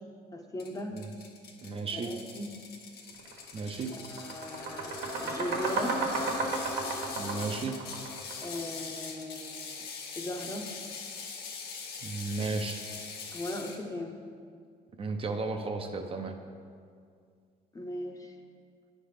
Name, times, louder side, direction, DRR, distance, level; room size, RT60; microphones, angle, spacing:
voice 1, 0.3-1.0 1.9-2.5 3.9-4.9 5.2-6.0 8.4-9.8 10.2-10.7 13.3-14.2 17.7-18.3, left 1 dB, 20° left, 3 dB, 0.7 m, -38 dB
Ratchet pawl, 0.6-13.8, left 5 dB, 70° left, 1.0 m, -43 dB
voice 2, 1.6-2.1 3.5-3.9 7.2-7.7 12.0-12.8 15.0-16.4, right 3 dB, 35° right, 5 dB, 0.6 m, -34 dB
sound 1, 3.2-3.4 3.7-8.7, right 3 dB, 85° right, 1.3 m, -32 dB
9.1 x 3.4 x 5.7 m, 2.2 s
cardioid pair, 110°, 17 cm